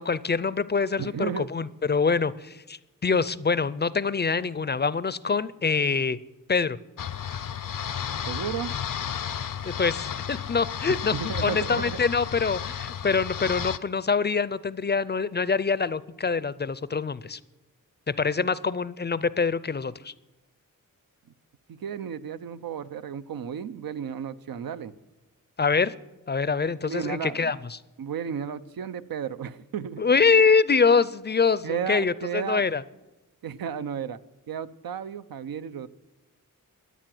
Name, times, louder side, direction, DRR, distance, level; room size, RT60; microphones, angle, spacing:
voice 1, 0.0-6.2 6.5-6.8 9.6-11.1 11.4-17.4 18.1-20.1 25.6-25.9 26.3-27.8 30.0-32.8, left 5 dB, 30° left, 18 dB, 0.4 m, -25 dB
voice 2, 1.0-1.5 8.3-8.8 10.9-12.0 21.7-24.9 26.8-27.5 28.0-30.0 31.6-32.7 33.4-34.2 34.5-35.9, right 8 dB, 90° right, 13 dB, 0.7 m, -33 dB
sound 1, 7.0-13.8, left 8 dB, 70° left, 0.6 m, -33 dB
13.5 x 10.0 x 7.7 m, 1.0 s
wide cardioid pair, 110°, 34 cm